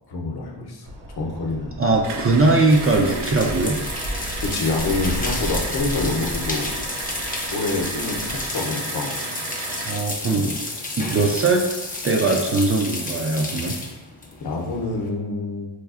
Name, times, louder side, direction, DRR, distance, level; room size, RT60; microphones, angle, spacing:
voice 1, 0.1-0.9 1.2-2.0 4.4-6.7 7.5-9.2 10.3-10.5 14.4-15.7, left 3 dB, 55° left, 0 dB, 0.7 m, -27 dB
sound 1, 0.8-8.5, equal, 70° right, 1.3 m, -34 dB
voice 2, 1.8-3.8 9.9-10.5 11.0-11.7 12.0-13.7, right 3 dB, 30° right, 1 dB, 0.4 m, -20 dB
sound 2, 1.9-15.1, left 2 dB, 20° left, 0.6 m, -32 dB
sound 3, 2.0-10.1, right 4 dB, 85° right, 0.6 m, -34 dB
4.4 x 2.3 x 2.4 m, 1.0 s
cardioid pair, 70°, 47 cm